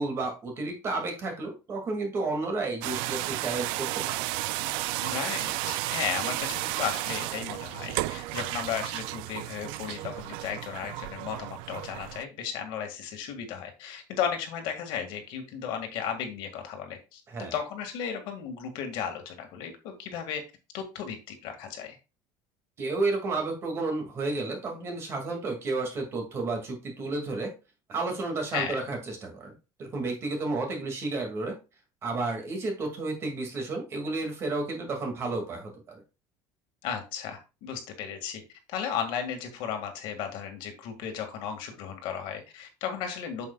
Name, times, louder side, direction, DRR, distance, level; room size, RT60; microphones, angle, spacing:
voice 1, 0.0-4.3 17.3-17.5 22.8-27.5 27.9-29.5 29.8-31.6 32.0-35.7, right 3 dB, 30° right, 3 dB, 2.1 m, -31 dB
sound 1, 2.8-12.2, right 18 dB, 70° right, 0.3 m, -33 dB
voice 2, 5.0-17.2 17.5-20.4 20.7-22.0 28.5-28.8 36.8-38.4 38.7-43.5, left 8 dB, 65° left, 5 dB, 1.9 m, -35 dB
8.0 x 7.0 x 2.3 m, 0.30 s
cardioid pair, 170°, 9 cm